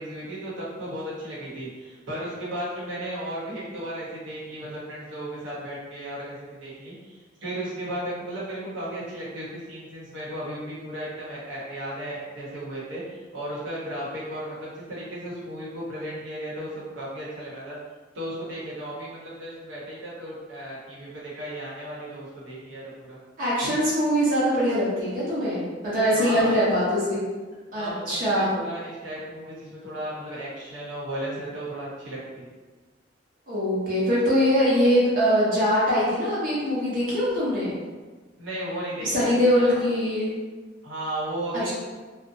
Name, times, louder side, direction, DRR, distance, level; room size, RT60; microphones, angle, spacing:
voice 1, 0.0-17.8 18.1-23.2 26.1-26.6 27.7-32.5 38.4-39.9 40.8-41.7, right 1 dB, 75° right, -7 dB, 0.9 m, -35 dB
voice 2, 23.4-27.2 27.7-28.5 33.5-37.7 39.0-40.3 41.5-41.7, equal, 45° right, -8 dB, 0.7 m, -22 dB
2.6 x 2.1 x 2.5 m, 1.4 s
head